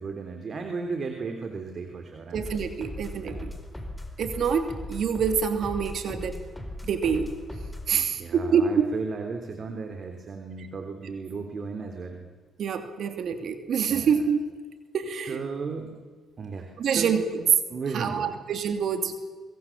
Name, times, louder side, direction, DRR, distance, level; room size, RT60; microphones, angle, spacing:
voice 1, 0.0-2.4 3.2-3.5 7.0-7.1 7.9-12.2 13.9-14.1 15.3-16.0 16.4-17.1 17.7-18.4, right 4 dB, 45° right, 5 dB, 3.3 m, -35 dB
sound 1, 2.3-8.0, left 1 dB, 5° left, 4.2 m, -38 dB
voice 2, 2.3-3.5 4.2-6.4 6.8-7.3 7.9-8.9 12.6-14.5 14.9-15.4 16.8-17.4 17.9-19.1, right 6 dB, 65° right, 7 dB, 2.7 m, -26 dB
24.5 x 23.0 x 7.4 m, 1.5 s
cardioid pair, 90°, 0 cm